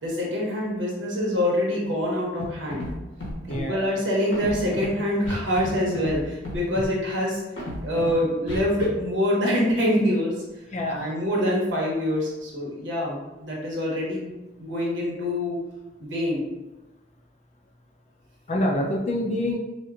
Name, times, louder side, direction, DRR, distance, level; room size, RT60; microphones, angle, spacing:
voice 1, 0.0-2.9 3.5-7.4 7.8-10.3 10.9-14.3 14.6-15.6 16.0-16.5, left 1 dB, 85° right, -3 dB, 1.0 m, -25 dB
Scratching (performance technique), 2.4-2.5 2.7-2.9 3.2-3.6 4.3-4.9 5.2-5.7 5.9-6.2 6.4-6.9 7.6-8.1 8.5-8.9, left 1 dB, 80° left, 1.0 m, -33 dB
voice 2, 3.5-3.9 10.7-11.1 18.5-19.6, left 1 dB, 40° left, 1 dB, 0.4 m, -26 dB
4.4 x 2.2 x 2.4 m, 1.1 s
head